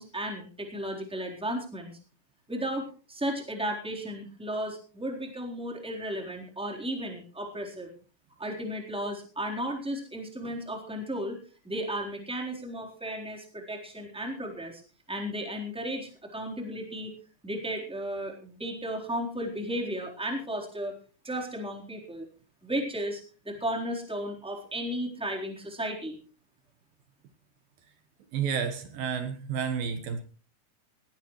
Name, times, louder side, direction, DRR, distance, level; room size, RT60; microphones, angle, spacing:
voice 1, 0.0-2.0 2.5-7.9 8.4-11.4 11.6-14.8 15.1-17.1 17.4-20.9 21.2-22.3 22.6-26.2, equal, ahead, 0 dB, 3.4 m, -34 dB
voice 2, 28.3-30.2, right 7 dB, 70° right, 7 dB, 3.0 m, -30 dB
19.5 x 17.0 x 3.2 m, 0.38 s
omnidirectional pair, 4.4 m